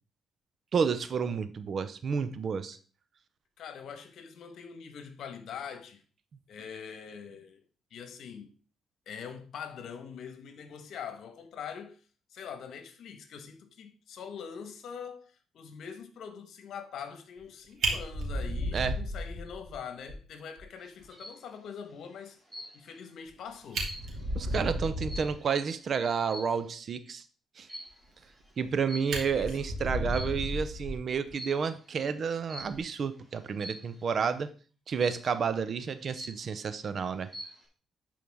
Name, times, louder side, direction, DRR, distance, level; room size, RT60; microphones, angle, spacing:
voice 1, 0.7-2.8 18.7-19.0 24.3-27.2 27.6-27.7 28.6-34.5 34.9-37.3, right 6 dB, 50° right, 0.7 m, -30 dB
voice 2, 3.6-6.0 6.5-7.6 7.9-8.5 9.1-12.0 12.3-22.4 22.7-23.9 29.2-29.7, left 7 dB, 70° left, 1.4 m, -43 dB
Fire, 17.4-17.5 17.8-19.7 20.1-20.2 20.6-20.7 21.0-21.1 23.3-23.4 23.6-25.4 28.2-28.7 29.1-31.3 32.6-32.8, right 1 dB, 65° right, 2.7 m, -33 dB
sound 1, 20.8-21.5 22.5-23.0 23.4-25.7 26.2-26.7 27.7-28.1 28.9-29.5 30.0-30.7 31.4-31.7 32.5-32.9 33.6-34.0 35.0-35.5 35.9-36.0 36.2-36.8 37.1-37.7, equal, 10° right, 2.4 m, -44 dB
11.0 x 4.7 x 3.6 m
cardioid pair, 90°, 0 cm